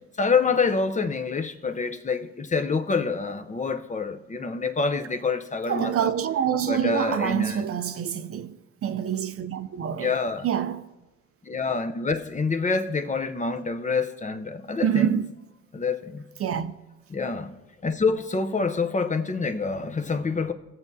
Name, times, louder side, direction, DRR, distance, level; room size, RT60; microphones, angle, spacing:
voice 1, 0.2-6.1 6.6-7.6 9.9-10.5 11.4-15.2 15.7-16.2 17.1-17.5 17.8-20.5, left 4 dB, 25° left, 0.6 m, -27 dB
voice 2, 5.7-10.2 10.4-10.9 14.8-15.3 16.4-16.7, right 9 dB, 50° right, 0.5 m, -26 dB
17.5 x 7.2 x 2.7 m
cardioid pair, 90°, 30 cm